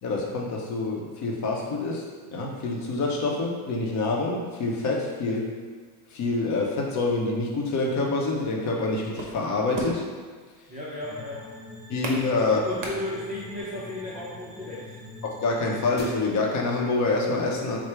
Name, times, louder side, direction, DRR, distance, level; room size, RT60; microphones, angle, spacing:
voice 1, 0.0-5.5 6.1-10.0 11.9-12.6 15.2-17.8, left 3 dB, 35° left, -1 dB, 0.7 m, -26 dB
sound 1, 9.1-13.6, right 1 dB, 40° right, 1.0 m, -38 dB
voice 2, 10.7-11.5 12.3-15.1, left 1 dB, 15° right, -7 dB, 0.4 m, -35 dB
sound 2, 11.0-16.0, left 2 dB, 20° left, 1.2 m, -44 dB
4.6 x 2.1 x 4.5 m, 1.5 s
supercardioid pair, 125°, 50 cm